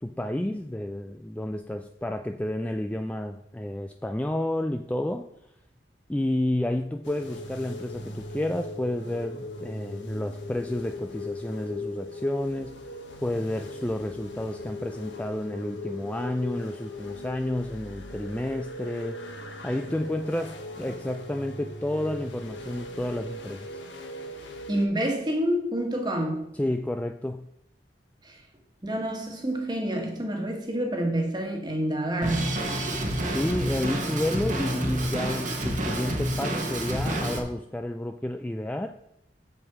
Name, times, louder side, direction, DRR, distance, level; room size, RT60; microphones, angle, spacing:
voice 1, 0.0-5.2 6.1-12.8 13.2-19.2 19.6-23.7 26.5-27.5 33.3-38.9, left 1 dB, 10° left, 0.3 m, -30 dB
sound 1, 7.0-24.9, left 2 dB, 90° left, 1.3 m, -39 dB
voice 2, 24.7-26.5 28.2-28.4 28.8-32.5, right 1 dB, 25° right, 1.5 m, -28 dB
Drum kit, 32.2-37.4, right 1 dB, 45° right, 1.3 m, -29 dB
7.9 x 7.3 x 4.8 m
head